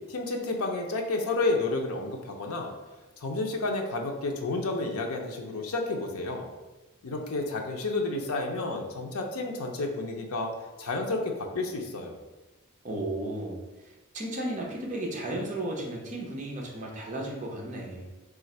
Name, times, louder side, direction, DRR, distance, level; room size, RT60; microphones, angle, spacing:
voice 1, 0.0-2.7 3.2-6.5 7.0-10.5 10.8-12.2, left 2 dB, 85° left, 2 dB, 0.5 m, -31 dB
voice 2, 12.8-18.1, right 1 dB, 35° right, -1 dB, 0.7 m, -34 dB
3.2 x 2.4 x 4.2 m, 1.2 s
head